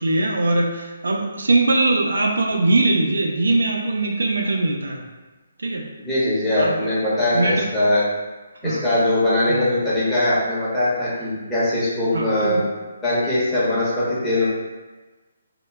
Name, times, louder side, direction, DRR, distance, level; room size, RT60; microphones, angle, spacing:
voice 1, 0.0-5.0 5.6-5.9 6.6-6.8 7.3-7.7 8.6-8.8 9.5-9.7 12.1-12.7, right 2 dB, 85° right, 1 dB, 0.4 m, -21 dB
voice 2, 6.0-8.0 8.6-12.6 13.0-14.5, left 1 dB, 10° left, -10 dB, 0.8 m, -21 dB
2.1 x 2.0 x 3.3 m, 1.2 s
hypercardioid pair, 155°, 0 cm